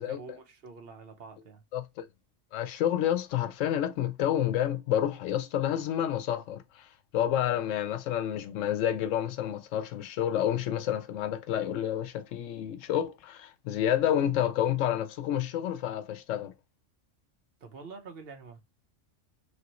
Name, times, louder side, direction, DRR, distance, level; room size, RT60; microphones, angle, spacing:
voice 1, 0.0-1.6 17.6-18.6, right 4 dB, 55° right, 0.9 m, -46 dB
voice 2, 1.7-2.1 2.5-6.9 7.1-16.5, left 10 dB, 85° left, 1.0 m, -29 dB
3.1 x 2.6 x 2.9 m
omnidirectional pair, 1.3 m